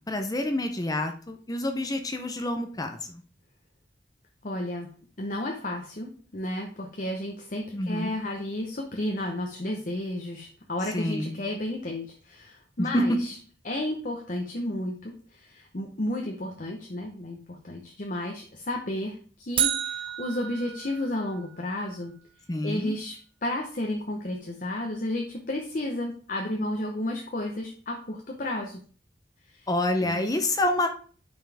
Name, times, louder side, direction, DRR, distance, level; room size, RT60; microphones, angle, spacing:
voice 1, 0.1-3.2 7.7-8.1 10.9-11.4 12.8-13.1 22.5-22.9 29.7-30.9, left 1 dB, 20° left, 5 dB, 0.6 m, -28 dB
voice 2, 4.4-4.9 5.2-13.3 13.6-22.1 22.6-23.2 23.4-28.8 29.5-29.7 30.0-30.4, left 1 dB, 45° left, 1 dB, 0.9 m, -32 dB
sound 1, 19.6-21.7, right 10 dB, 30° right, 0.6 m, -30 dB
9.0 x 5.4 x 3.5 m, 0.43 s
head